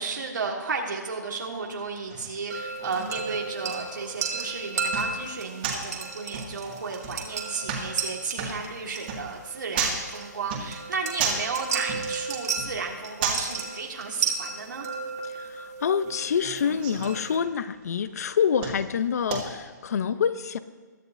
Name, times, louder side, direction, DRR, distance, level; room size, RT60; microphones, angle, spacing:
voice 1, 0.0-14.9, right 4 dB, 85° right, -1 dB, 1.9 m, -33 dB
sound 1, 1.3-19.9, right 5 dB, 30° right, 2.2 m, -36 dB
sound 2, 2.5-17.4, right 5 dB, 60° right, 2.1 m, -34 dB
voice 2, 15.3-20.6, left 7 dB, 55° left, 14 dB, 0.7 m, -27 dB
21.5 x 11.0 x 2.7 m, 1.5 s
hypercardioid pair, 160°, 10 cm